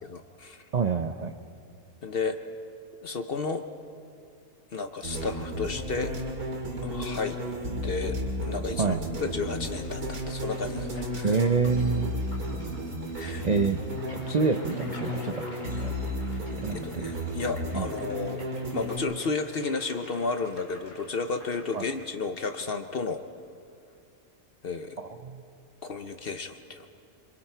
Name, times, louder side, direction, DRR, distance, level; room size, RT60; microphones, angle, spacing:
voice 1, 0.0-0.6 2.0-2.4 3.0-3.6 4.7-6.2 6.8-7.4 7.8-11.4 13.1-13.5 16.8-18.5 18.7-23.2 24.6-25.0 25.8-26.9, left 4 dB, 50° left, 7 dB, 0.8 m, -32 dB
voice 2, 0.7-1.3 8.8-9.0 11.2-12.2 13.4-13.8 14.2-15.4 15.7-15.9 16.6-17.1 17.7-17.9 21.7-21.8 25.2-25.4, right 5 dB, 50° right, 6 dB, 0.5 m, -27 dB
sound 1, 5.0-19.0, equal, 90° right, 2.9 m, -33 dB
sound 2, 9.8-22.1, left 1 dB, 75° left, 4.7 m, -50 dB
26.5 x 24.0 x 4.5 m, 2.4 s
omnidirectional pair, 1.5 m